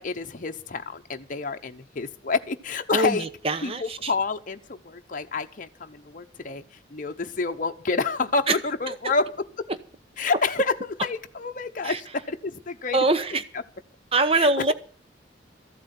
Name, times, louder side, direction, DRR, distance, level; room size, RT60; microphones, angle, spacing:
voice 1, 0.0-3.3 3.6-6.6 6.9-9.7 10.2-13.0 13.3-13.6 14.3-14.7, left 4 dB, 45° left, 5 dB, 0.9 m, -29 dB
voice 2, 3.4-4.1 8.5-8.6 11.8-12.0 12.9-13.4 14.1-14.7, right 2 dB, 30° right, 12 dB, 0.9 m, -22 dB
14.0 x 8.3 x 8.2 m, 0.43 s
head